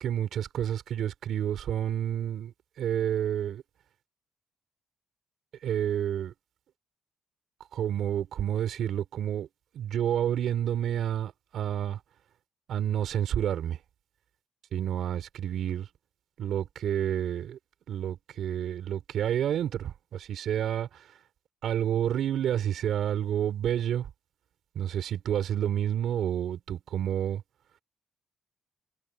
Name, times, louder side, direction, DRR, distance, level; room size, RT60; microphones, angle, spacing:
voice 1, 0.0-3.6 5.6-6.3 7.7-9.5 9.7-12.0 12.7-13.8 14.7-15.9 16.4-17.6 17.9-21.1 21.6-24.1 24.8-27.4, right 10 dB, 70° right, 3.8 m, -29 dB
cardioid pair, 90°, 0 cm